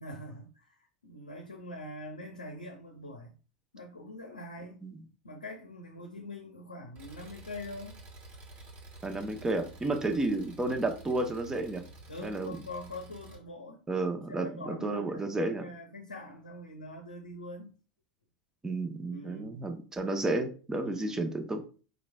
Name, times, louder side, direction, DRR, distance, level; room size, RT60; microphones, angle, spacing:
voice 1, 0.0-3.3 3.7-4.8 5.2-8.0 9.9-10.2 12.1-13.8 14.3-17.7 19.1-19.7 20.8-21.3, left 1 dB, 85° left, 0.6 m, -44 dB
Engine, 7.0-13.4, right 2 dB, 40° right, 1.4 m, -50 dB
voice 2, 9.0-11.8 12.2-12.6 13.9-15.7 18.6-21.6, right 2 dB, 15° right, 0.8 m, -32 dB
5.2 x 3.0 x 2.3 m
figure-of-eight pair, 85°, 4 cm